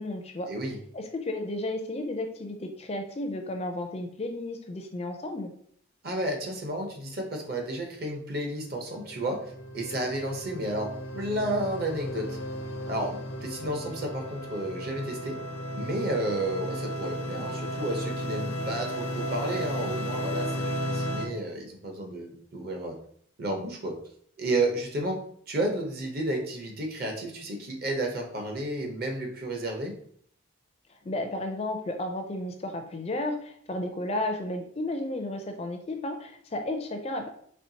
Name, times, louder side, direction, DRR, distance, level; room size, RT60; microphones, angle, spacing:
voice 1, 0.0-0.5 0.9-5.5 31.0-37.3, left 1 dB, 30° left, 5 dB, 0.4 m, -33 dB
voice 2, 6.0-9.5 9.7-12.4 12.9-15.4 15.7-23.0 23.4-24.0 24.4-25.2 25.5-29.9, right 1 dB, 45° right, 2 dB, 0.8 m, -32 dB
sound 1, 8.8-21.3, equal, 85° left, 0.6 m, -34 dB
4.4 x 3.1 x 2.7 m, 0.62 s
head